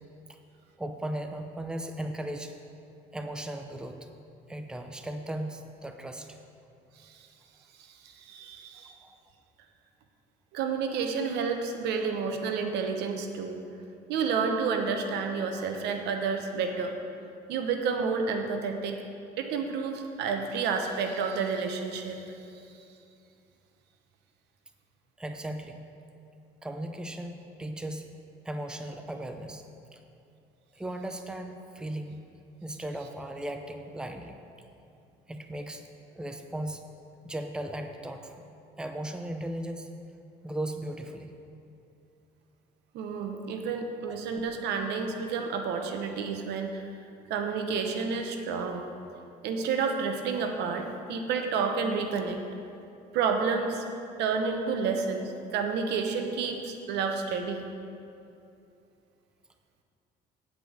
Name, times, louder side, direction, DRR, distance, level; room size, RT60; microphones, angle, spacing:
voice 1, 0.8-2.5 3.1-4.1 4.5-6.3 9.0-9.2 25.2-25.8 26.6-27.3 27.6-28.1 28.4-29.6 29.9-30.0 30.8-32.2 32.6-34.4 35.3-35.8 36.1-36.8 37.2-38.4 38.8-39.9 40.4-41.3, right 1 dB, 5° right, 5 dB, 0.6 m, -37 dB
voice 2, 8.0-8.9 10.5-13.6 14.1-17.0 17.5-19.0 19.4-22.2 42.9-46.8 47.3-48.8 49.4-52.4 53.1-53.8 54.2-57.7, right 5 dB, 80° right, 5 dB, 1.0 m, -30 dB
8.5 x 5.2 x 7.7 m, 2.6 s
cardioid pair, 110°, 17 cm